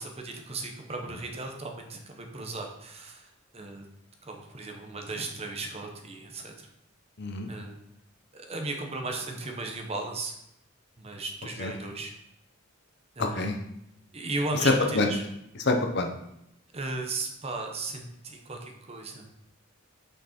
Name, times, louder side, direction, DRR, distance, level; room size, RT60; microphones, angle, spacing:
voice 1, 0.0-3.3 3.5-3.8 4.2-6.7 7.5-7.8 8.3-10.3 11.0-12.1 13.2-13.5 14.1-15.2 16.7-19.3, right 2 dB, 30° right, 3 dB, 0.9 m, -36 dB
voice 2, 7.2-7.5 11.6-11.7 13.2-13.6 14.6-15.1 15.6-16.1, left 2 dB, 50° left, 4 dB, 0.8 m, -25 dB
6.0 x 5.6 x 4.3 m, 0.82 s
head